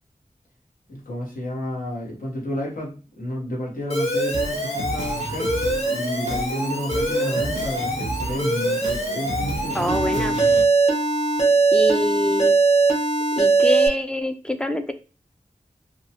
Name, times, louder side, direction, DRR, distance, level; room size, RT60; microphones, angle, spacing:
voice 1, 0.9-10.3, equal, 90° left, -3 dB, 1.0 m, -31 dB
Alarm, 3.9-13.9, right 3 dB, 50° left, 0.9 m, -22 dB
sound 1, 4.3-10.6, right 2 dB, 55° right, 0.5 m, -32 dB
voice 2, 9.7-10.4 11.7-12.6 13.4-14.9, equal, 5° left, 8 dB, 0.3 m, -25 dB
2.7 x 2.2 x 2.7 m, 0.35 s
wide cardioid pair, 70°, 14 cm